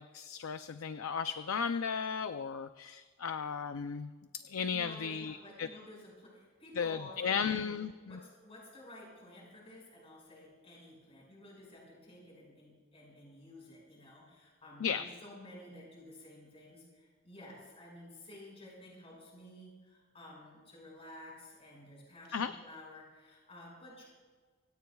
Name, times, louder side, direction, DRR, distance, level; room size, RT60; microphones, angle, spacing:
voice 1, 0.0-4.1 4.5-5.7 6.7-8.2 14.8-15.0 22.3-22.5, left 6 dB, 80° left, 9 dB, 0.5 m, -35 dB
voice 2, 4.7-7.8 8.1-24.0, left 1 dB, 30° left, -3 dB, 6.1 m, -52 dB
26.5 x 17.5 x 2.4 m, 1.4 s
head